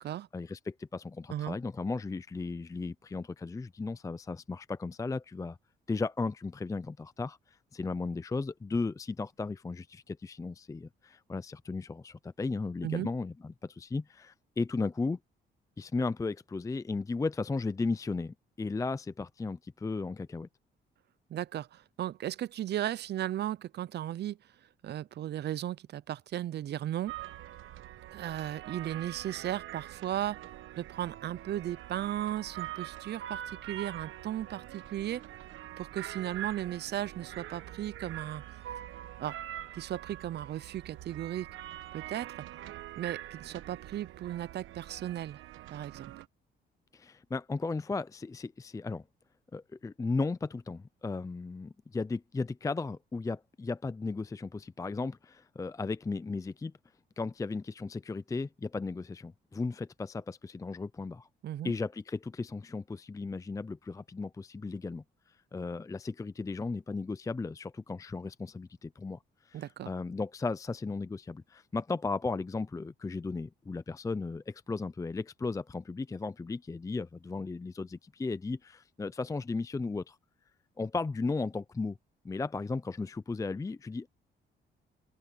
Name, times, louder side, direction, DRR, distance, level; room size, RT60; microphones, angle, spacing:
voice 1, 0.3-5.6 5.9-7.4 7.7-15.2 15.8-20.5 46.9-49.0 49.5-56.7 57.2-61.3 61.6-65.0 65.5-69.2 69.5-80.2 80.8-82.0 82.2-84.1, left 3 dB, 15° left, 0.5 m, -35 dB
voice 2, 21.3-24.4 24.8-27.2 28.1-30.4 30.8-35.2 35.8-38.4 39.2-39.4 39.7-41.5 41.9-42.3 43.0-45.4 45.7-46.1 61.4-61.7 69.5-69.9, right 12 dB, 55° right, 0.6 m, -36 dB
sound 1, 27.1-46.2, right 13 dB, 85° right, 1.3 m, -44 dB
open air
cardioid pair, 90°, 20 cm